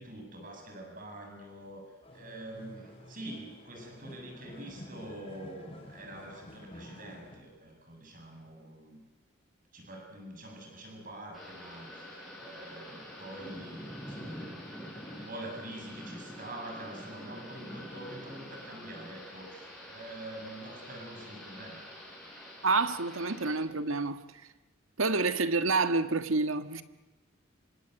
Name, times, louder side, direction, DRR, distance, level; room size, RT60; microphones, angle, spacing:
voice 1, 0.0-9.0 9.7-14.6 15.3-21.8, right 1 dB, 40° right, 7.7 m, -45 dB
sound 1, 2.0-7.4, left 1 dB, 25° left, 6.5 m, -50 dB
Thunder / Rain, 11.3-23.5, equal, ahead, 6.7 m, -46 dB
voice 2, 22.6-24.2 25.0-26.8, right 3 dB, 80° right, 1.6 m, -28 dB
27.0 x 25.0 x 8.2 m
head